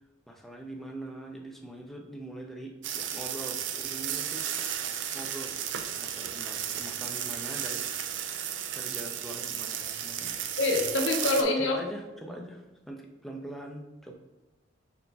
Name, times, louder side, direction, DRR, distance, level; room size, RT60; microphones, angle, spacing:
voice 1, 0.3-4.4 5.1-7.8 8.7-10.6 11.6-14.1, right 1 dB, ahead, 0 dB, 0.4 m, -43 dB
sound 1, 2.8-11.4, right 9 dB, 75° right, 0.4 m, -34 dB
voice 2, 10.6-11.8, left 2 dB, 80° left, 1 dB, 0.8 m, -25 dB
5.6 x 3.9 x 2.3 m, 1.0 s
head